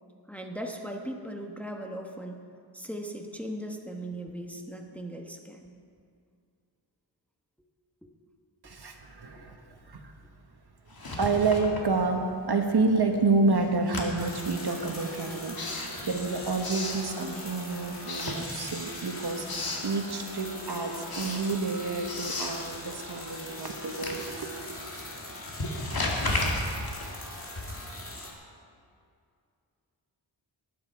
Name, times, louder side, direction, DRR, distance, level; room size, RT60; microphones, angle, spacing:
voice 1, 0.3-2.4 2.7-5.7 8.0-8.1 9.4-9.5, right 1 dB, 5° left, 2 dB, 1.1 m, -38 dB
voice 2, 8.6-10.1 11.2-19.5 19.8-24.8, right 3 dB, 55° right, 4 dB, 1.3 m, -29 dB
Writing, 10.9-12.5 12.8-17.6 18.0-19.0 19.2-19.9 20.3-28.0, left 2 dB, 50° left, 2.1 m, -35 dB
sound 1, 14.2-28.3, left 1 dB, 30° left, 2.1 m, -41 dB
19.0 x 9.7 x 4.7 m, 2.3 s
wide cardioid pair, 95°, 46 cm